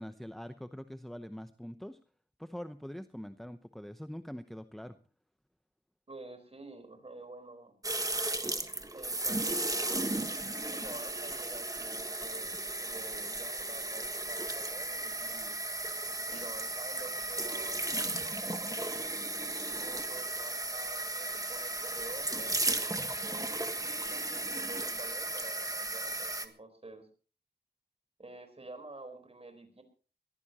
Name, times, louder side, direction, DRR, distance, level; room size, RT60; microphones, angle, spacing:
voice 1, 0.0-2.0 2.4-5.0, equal, ahead, 9 dB, 0.8 m, -43 dB
voice 2, 6.1-7.7 8.9-15.5 16.3-19.1 19.8-23.6 24.1-27.1 28.2-29.8, right 2 dB, 35° right, 7 dB, 4.2 m, -49 dB
sound 1, 7.8-26.5, right 2 dB, 20° right, 1.5 m, -35 dB
22.5 x 15.0 x 2.9 m, 0.36 s
wide cardioid pair, 100°, 18 cm